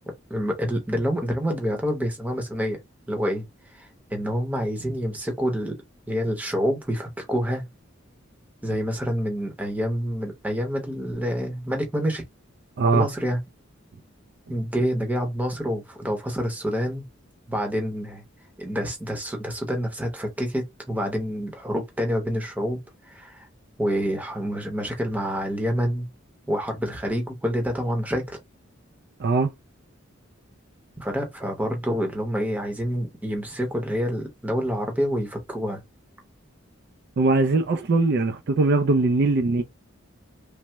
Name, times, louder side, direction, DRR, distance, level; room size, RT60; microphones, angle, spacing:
voice 1, 0.3-2.8 3.1-3.4 3.7-5.8 6.1-7.7 8.6-12.2 12.9-13.4 14.5-17.1 17.5-18.2 18.6-23.5 23.8-26.1 26.5-28.4 31.0-35.8, equal, 10° right, 0.7 m, -27 dB
voice 2, 29.2-29.5 37.2-39.6, right 3 dB, 55° right, 0.4 m, -21 dB
3.3 x 2.0 x 2.8 m
head